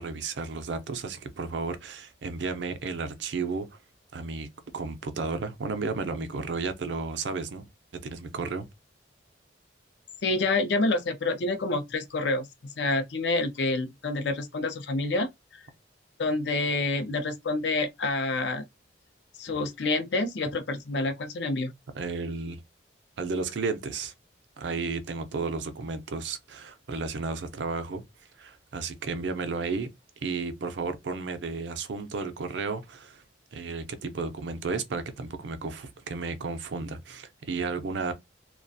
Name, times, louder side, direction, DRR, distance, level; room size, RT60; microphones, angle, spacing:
voice 1, 0.0-3.7 4.1-7.7 8.0-8.7 21.9-22.6 23.2-24.1 24.6-28.0 28.4-29.9 30.2-33.2 33.5-38.1, right 4 dB, 70° right, 0.5 m, -33 dB
voice 2, 10.2-12.5 12.8-15.6 16.2-18.6 19.4-21.7, left 2 dB, 65° left, 0.5 m, -28 dB
2.3 x 2.2 x 2.6 m
head